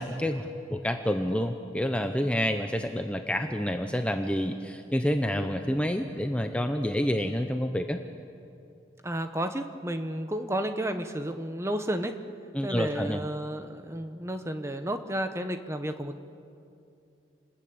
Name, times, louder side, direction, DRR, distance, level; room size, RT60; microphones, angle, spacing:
voice 1, 0.0-8.0 12.5-13.2, equal, 5° left, 5 dB, 0.8 m, -28 dB
voice 2, 9.0-12.1 12.6-16.2, right 1 dB, 15° right, 8 dB, 1.1 m, -32 dB
28.5 x 20.5 x 8.8 m, 2.6 s
head